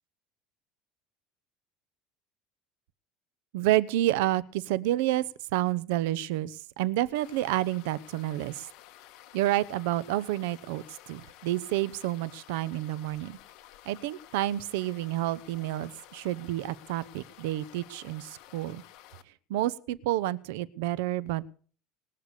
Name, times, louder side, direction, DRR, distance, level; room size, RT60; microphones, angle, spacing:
voice 1, 3.5-5.2 5.5-8.7 9.3-13.4 13.9-18.8 19.5-21.5, right 15 dB, 90° right, 19 dB, 0.8 m, -29 dB
sound 1, 7.1-19.2, left 13 dB, 65° left, 1.5 m, -53 dB
20.0 x 6.7 x 8.2 m, 0.44 s
cardioid pair, 140°, 0 cm